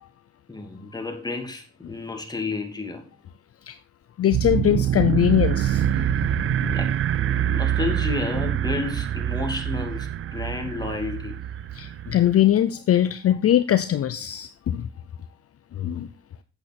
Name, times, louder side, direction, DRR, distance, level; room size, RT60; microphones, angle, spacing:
voice 1, 0.5-3.0 6.7-11.4, left 3 dB, 15° left, 2.6 m, -31 dB
voice 2, 4.2-6.1 6.6-6.7 11.7-14.9 15.7-16.1, left 11 dB, 50° left, 0.6 m, -21 dB
sound 1, 4.3-12.4, right 11 dB, 45° right, 0.4 m, -25 dB
9.0 x 7.9 x 4.2 m
cardioid pair, 90°, 30 cm